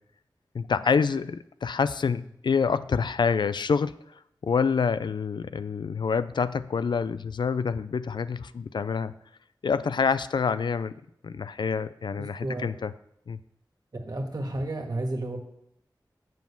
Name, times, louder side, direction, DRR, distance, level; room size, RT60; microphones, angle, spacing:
voice 1, 0.5-4.0 4.4-9.1 9.6-11.0 11.2-12.9 13.3-13.4, left 5 dB, 75° left, 14 dB, 0.4 m, -27 dB
voice 2, 12.2-12.6 13.9-15.4, right 1 dB, 55° right, 3 dB, 1.8 m, -32 dB
7.1 x 5.9 x 7.0 m, 0.74 s
wide cardioid pair, 60°, 8 cm